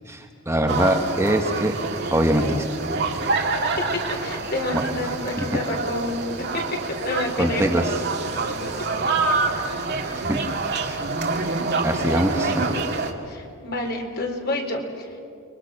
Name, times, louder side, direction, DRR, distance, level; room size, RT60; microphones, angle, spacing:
voice 1, 0.1-1.7 2.1-2.7 4.7-4.8 5.4-5.5 7.4-7.9 10.1-10.4 10.8-11.0 11.4-11.5 11.8-12.7, right 1 dB, 15° right, 3 dB, 1.5 m, -23 dB
sound 1, 0.7-13.1, right 3 dB, 55° right, 2.2 m, -27 dB
voice 2, 3.8-7.7 8.4-8.5 13.3-15.2, left 2 dB, 50° left, 2 dB, 3.8 m, -29 dB
30.0 x 23.0 x 6.2 m, 2.4 s
head